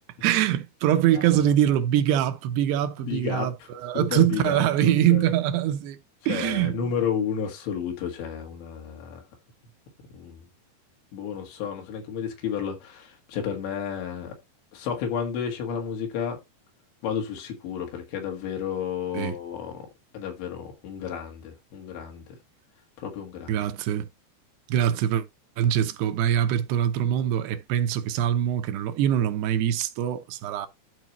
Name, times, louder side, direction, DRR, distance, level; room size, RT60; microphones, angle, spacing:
voice 1, 0.2-6.0 6.3-6.8 19.1-19.4 23.5-24.1 24.7-25.2 25.6-30.7, right 11 dB, 75° right, 2.7 m, -23 dB
voice 2, 3.0-3.5 3.9-5.2 6.3-9.2 10.1-10.4 11.1-14.3 14.7-16.4 17.0-19.7 20.1-22.2 23.0-23.6, left 7 dB, 80° left, 4.0 m, -31 dB
12.5 x 4.8 x 3.0 m
omnidirectional pair, 5.1 m